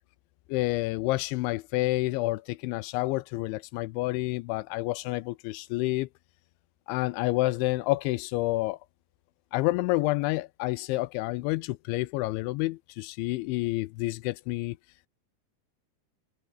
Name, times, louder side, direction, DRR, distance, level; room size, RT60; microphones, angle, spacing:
voice 1, 0.5-6.1 6.9-8.8 9.5-14.8, left 20 dB, 85° left, 3.0 m, -29 dB
omnidirectional pair, 5.5 m